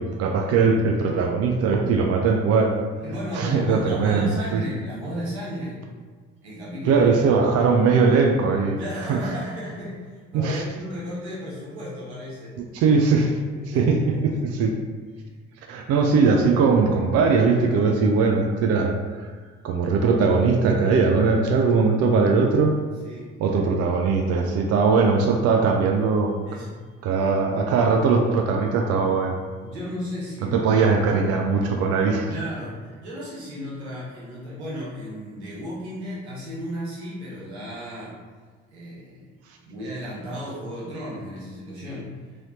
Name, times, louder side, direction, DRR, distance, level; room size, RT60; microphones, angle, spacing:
voice 1, 0.0-2.8 3.3-4.6 6.9-8.8 9.1-9.2 10.3-10.6 12.7-13.3 13.8-14.7 15.7-19.3 19.6-22.8 23.4-26.4 27.0-29.4 30.5-32.3, right 4 dB, 50° right, 2 dB, 0.5 m, -20 dB
voice 2, 3.0-5.8 6.4-7.1 8.8-10.0 10.3-12.6 13.5-13.9 14.3-14.8 23.0-23.3 26.5-26.7 29.6-30.9 32.3-38.1 38.7-39.2 39.6-42.1, equal, 90° right, -7 dB, 0.9 m, -34 dB
3.2 x 2.7 x 2.7 m, 1.5 s
hypercardioid pair, 50°, 33 cm